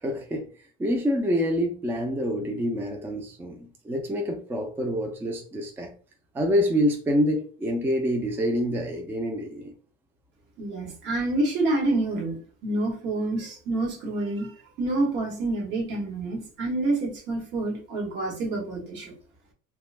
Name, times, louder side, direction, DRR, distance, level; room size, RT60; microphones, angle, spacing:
voice 1, 0.0-0.4 0.8-5.9 6.3-9.7, equal, 10° right, 3 dB, 0.3 m, -26 dB
voice 2, 10.6-12.4 12.6-14.5 14.8-19.2, right 2 dB, 60° right, 0 dB, 1.1 m, -27 dB
2.4 x 2.2 x 3.2 m, 0.43 s
cardioid pair, 150°, 21 cm